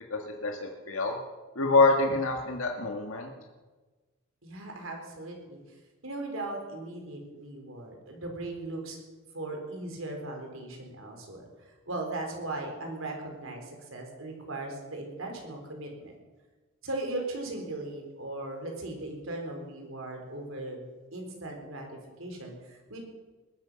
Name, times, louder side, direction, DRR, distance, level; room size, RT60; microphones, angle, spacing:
voice 1, 0.1-1.2 1.6-3.3, left 3 dB, 75° left, 2 dB, 1.7 m, -26 dB
voice 2, 4.4-5.8 6.0-9.0 9.3-16.1 16.8-21.9 22.2-23.0, right 2 dB, 70° right, 2 dB, 4.2 m, -38 dB
21.0 x 9.7 x 6.3 m, 1.3 s
head